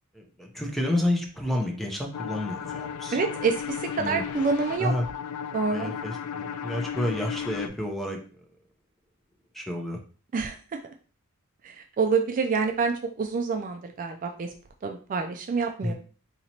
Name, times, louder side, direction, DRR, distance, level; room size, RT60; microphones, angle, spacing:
voice 1, 0.1-3.2 4.0-4.2 4.8-5.1 5.7-8.2 9.5-10.0 15.8-15.9, left 1 dB, ahead, 2 dB, 0.6 m, -30 dB
sound 1, 2.1-7.7, left 7 dB, 85° left, 0.3 m, -35 dB
voice 2, 3.1-4.9 5.5-5.9 10.3-10.8 11.6-14.5 14.8-15.9, right 4 dB, 40° right, 4 dB, 0.3 m, -27 dB
2.8 x 2.8 x 4.3 m, 0.40 s
head